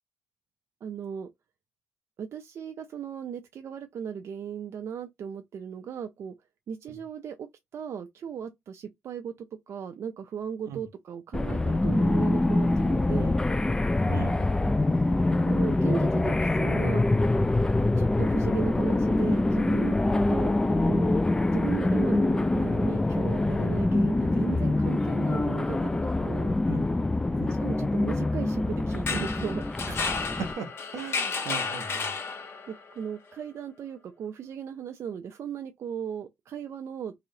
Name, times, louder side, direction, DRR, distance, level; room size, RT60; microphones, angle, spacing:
voice 1, 0.8-1.3 2.2-6.3 6.7-7.5 7.7-13.3 15.4-17.1 18.0-20.0 20.3-20.5 20.8-21.2 21.5-26.6 27.6-29.7 32.7-37.1, right 8 dB, 55° right, 0.5 m, -36 dB
sound 1, 11.3-30.5, left 2 dB, 15° left, 0.4 m, -25 dB
voice 2, 14.1-14.8 26.7-26.8 27.1-27.6 29.9-32.1, right 6 dB, 75° right, 1.0 m, -39 dB
sound 2, 28.9-32.8, left 4 dB, 50° left, 1.1 m, -32 dB
3.0 x 2.7 x 3.8 m
cardioid pair, 100°, 5 cm